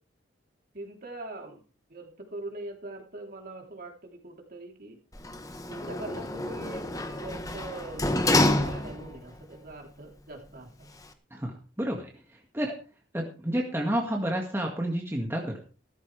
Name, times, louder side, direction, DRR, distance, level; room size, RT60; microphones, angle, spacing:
voice 1, 0.7-1.6 1.9-5.0 5.7-6.9 7.2-10.9, right 2 dB, 50° right, 2 dB, 3.5 m, -42 dB
Sliding door, 5.1-9.3 9.7-9.8, left 1 dB, 20° left, 1.2 m, -28 dB
voice 2, 11.3-12.1 12.5-12.7 13.1-15.6, right 1 dB, 10° right, 0 dB, 1.9 m, -30 dB
15.5 x 13.5 x 3.4 m, 0.37 s
head